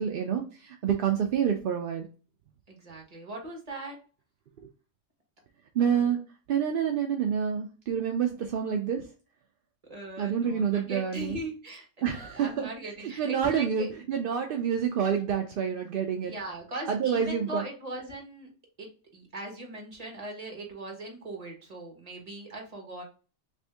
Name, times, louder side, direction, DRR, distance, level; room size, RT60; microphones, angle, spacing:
voice 1, 0.0-2.1 5.7-6.2 6.5-9.0 10.2-11.4 12.0-12.7 13.2-16.3 16.9-17.6, right 8 dB, 65° right, 3 dB, 0.5 m, -28 dB
voice 2, 2.7-4.0 5.8-6.1 9.9-13.9 16.2-18.5 18.8-23.0, right 1 dB, 30° right, 0 dB, 1.2 m, -40 dB
3.4 x 2.6 x 3.3 m, 0.36 s
omnidirectional pair, 1.3 m